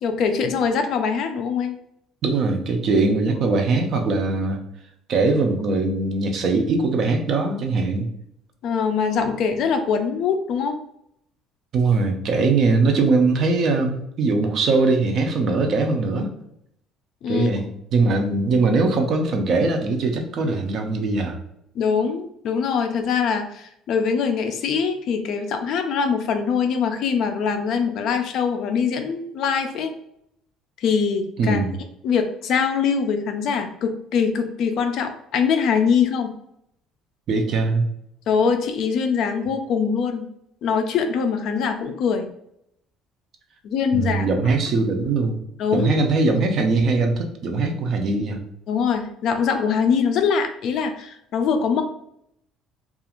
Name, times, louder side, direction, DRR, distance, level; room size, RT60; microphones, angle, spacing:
voice 1, 0.0-1.7 8.6-10.8 17.2-17.5 21.8-29.9 30.8-31.6 32.0-36.3 38.3-40.3 40.6-42.3 43.6-44.3 45.6-45.9 48.7-51.8, left 6 dB, 45° left, 6 dB, 0.3 m, -23 dB
voice 2, 2.2-4.6 5.1-8.1 11.7-16.3 17.3-17.7 17.9-21.4 31.4-31.7 37.3-37.8 43.9-45.4 45.7-48.4, right 3 dB, 40° right, 4 dB, 0.4 m, -21 dB
2.4 x 2.3 x 2.9 m, 0.75 s
cardioid pair, 175°, 0 cm